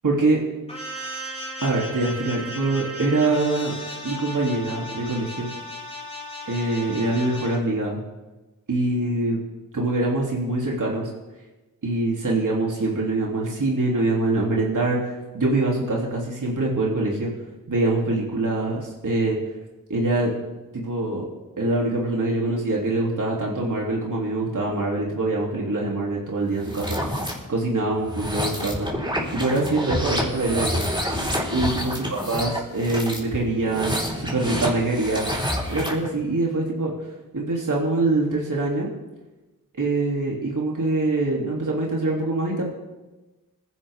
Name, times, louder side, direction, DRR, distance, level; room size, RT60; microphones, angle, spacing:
voice 1, 0.0-0.4 1.6-3.7 4.0-5.5 6.4-8.0 8.7-9.4 9.7-11.1 11.8-17.3 17.7-19.4 19.9-20.3 20.7-21.2 21.6-27.0 27.5-28.9 29.3-30.8 31.5-32.0 32.3-35.3 35.7-38.9 39.8-42.7, right 2 dB, 60° right, -3 dB, 3.3 m, -24 dB
sound 1, 0.7-7.6, left 1 dB, 15° left, 5.5 m, -36 dB
sound 2, 26.6-27.3 28.0-36.1, equal, 15° right, 4.8 m, -28 dB
26.0 x 11.0 x 3.8 m, 1.1 s
cardioid pair, 50°, 34 cm